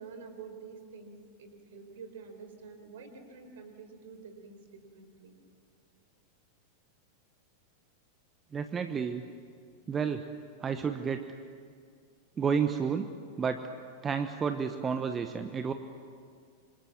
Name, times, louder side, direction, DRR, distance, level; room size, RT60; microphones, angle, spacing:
voice 1, 0.0-5.3, right 5 dB, 55° right, 6 dB, 4.6 m, -48 dB
voice 2, 8.5-9.2 9.9-10.2 10.6-11.2 12.4-13.1 13.4-13.6 14.0-15.7, right 6 dB, 20° right, 8 dB, 1.2 m, -30 dB
27.0 x 26.5 x 7.5 m, 2.2 s
figure-of-eight pair, 90°, 0 cm